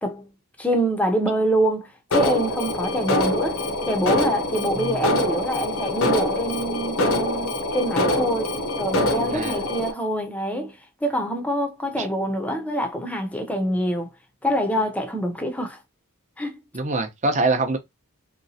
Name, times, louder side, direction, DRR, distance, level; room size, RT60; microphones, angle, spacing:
voice 1, 0.6-10.7 11.0-14.1 14.4-15.8 16.4-16.6, right 1 dB, 5° left, 0.6 m, -25 dB
Alarm, 2.1-9.9, left 1 dB, 70° left, 0.8 m, -24 dB
voice 2, 9.3-9.6 12.0-12.1 16.7-17.8, right 2 dB, 35° right, 0.7 m, -24 dB
3.1 x 3.0 x 2.7 m
head